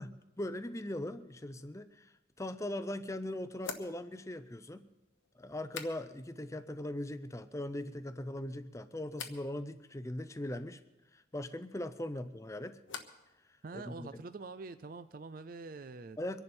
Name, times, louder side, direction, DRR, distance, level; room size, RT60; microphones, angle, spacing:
voice 1, 0.0-4.9 5.4-10.8 11.1-12.8 13.7-14.2 16.2-16.4, left 1 dB, 15° left, 11 dB, 0.6 m, -40 dB
sound 1, 2.3-2.4 3.6-6.4 6.7-7.3 7.7-8.3 9.1-9.5 11.9-13.3 13.6-14.2, left 6 dB, 80° left, 1.2 m, -49 dB
voice 2, 13.6-16.2, right 3 dB, 45° right, 13 dB, 0.4 m, -45 dB
24.5 x 11.0 x 4.4 m, 1.0 s
head